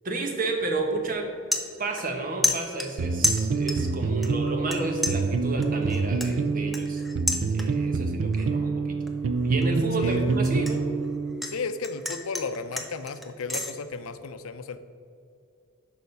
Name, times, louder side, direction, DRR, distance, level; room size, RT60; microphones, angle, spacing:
voice 1, 0.0-1.3 1.8-7.0 7.5-9.0 9.4-10.9, right 2 dB, 40° right, 3 dB, 1.0 m, -31 dB
sound 1, 0.6-0.8 1.2-2.2 2.4-3.9 4.2-4.8 5.0-7.9 8.3-8.7 9.1-11.5 11.8-13.7, left 1 dB, ahead, 0.5 m, -30 dB
sound 2, 3.0-11.4, right 4 dB, 75° right, 0.4 m, -26 dB
voice 2, 10.0-10.4 11.4-14.8, left 4 dB, 90° left, 11 dB, 0.5 m, -34 dB
6.8 x 5.1 x 5.3 m, 2.4 s
head